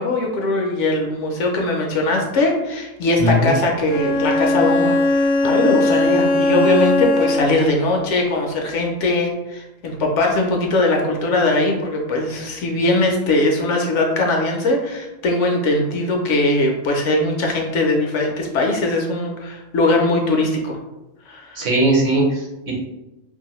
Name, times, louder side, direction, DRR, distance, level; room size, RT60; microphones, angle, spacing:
voice 1, 0.0-20.8 21.3-21.6, left 2 dB, 70° left, 1 dB, 0.8 m, -20 dB
voice 2, 3.2-3.5 21.6-22.8, right 1 dB, 60° right, -2 dB, 0.9 m, -19 dB
Bowed string instrument, 3.9-7.7, left 2 dB, 45° left, 0.5 m, -19 dB
2.7 x 2.5 x 2.9 m, 0.99 s
omnidirectional pair, 1.4 m